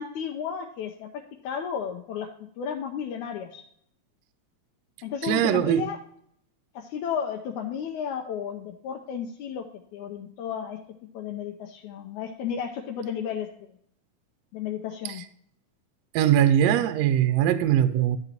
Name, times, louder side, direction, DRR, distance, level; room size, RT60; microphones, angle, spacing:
voice 1, 0.0-3.6 5.0-6.0 6.7-10.8 11.1-13.8 14.5-15.2, left 8 dB, 85° left, 2.1 m, -33 dB
voice 2, 5.2-5.9 16.1-18.2, right 10 dB, 80° right, 1.7 m, -21 dB
12.0 x 6.8 x 2.9 m
omnidirectional pair, 3.4 m